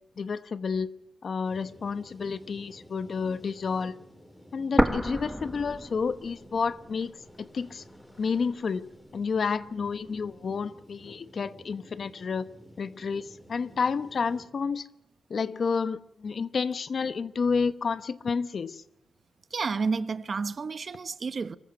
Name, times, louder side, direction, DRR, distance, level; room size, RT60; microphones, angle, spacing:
voice 1, 0.2-0.9 1.2-4.0 4.5-7.8 8.2-8.9 9.1-12.5 12.8-14.9 15.3-18.8, left 5 dB, 55° left, 1.0 m, -30 dB
sound 1, 1.4-14.5, equal, 15° left, 4.6 m, -53 dB
sound 2, 4.8-6.7 7.0-7.1 7.8-8.8, equal, 5° right, 1.6 m, -28 dB
voice 2, 19.5-21.6, right 4 dB, 50° right, 0.9 m, -30 dB
25.0 x 14.5 x 8.9 m
cardioid pair, 85°, 0 cm